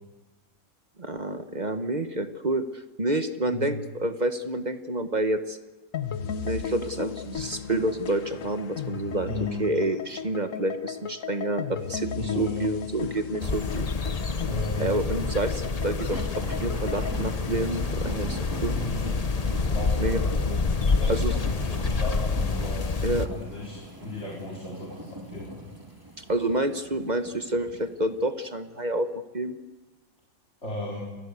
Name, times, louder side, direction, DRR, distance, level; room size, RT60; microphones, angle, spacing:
voice 1, 1.0-5.6 6.4-9.3 9.6-13.9 14.8-18.7 19.5-19.6 20.0-20.2 21.1-21.3 23.0-23.3 26.2-29.1 29.3-29.5, right 2 dB, 35° right, 9 dB, 1.2 m, -28 dB
voice 2, 3.5-3.8 9.2-9.6 12.1-12.7 14.4-14.9 18.8-19.2 19.4-20.6 21.0-22.8 23.3-25.5 30.6-31.1, left 2 dB, 50° left, -2 dB, 4.4 m, -36 dB
sound 1, 5.9-17.2, left 7 dB, 65° left, 1.4 m, -36 dB
sound 2, 13.4-23.3, left 4 dB, 30° left, 0.9 m, -27 dB
sound 3, 13.8-28.2 28.7-28.8, right 1 dB, 15° right, 3.2 m, -42 dB
29.5 x 22.0 x 8.2 m, 1.2 s
omnidirectional pair, 1.5 m